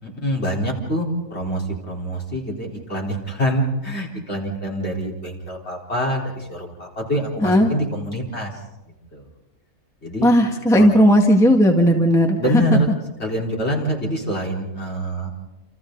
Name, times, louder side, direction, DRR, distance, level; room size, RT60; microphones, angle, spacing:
voice 1, 0.0-8.5 9.1-9.2 10.0-10.3 10.7-10.9 12.4-12.9 13.2-15.3, equal, 40° left, -2 dB, 4.6 m, -25 dB
voice 2, 10.2-12.4, equal, ahead, 2 dB, 1.7 m, -15 dB
28.5 x 28.5 x 4.0 m, 0.99 s
omnidirectional pair, 1.6 m